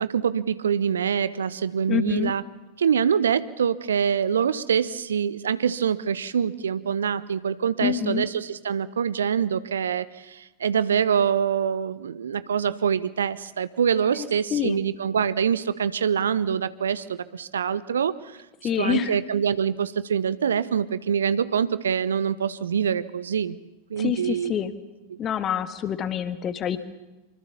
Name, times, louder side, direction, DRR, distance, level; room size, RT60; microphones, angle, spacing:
voice 1, 0.0-2.4 2.8-18.4 18.8-23.6 23.9-24.5 25.1-25.2, right 7 dB, 65° right, 16 dB, 0.8 m, -25 dB
voice 2, 1.9-2.3 7.8-8.2 14.2-14.8 18.6-19.2 24.0-24.7 25.2-26.8, left 8 dB, 30° left, 12 dB, 1.8 m, -27 dB
25.0 x 25.0 x 7.2 m, 1.0 s
figure-of-eight pair, 90°, 0 cm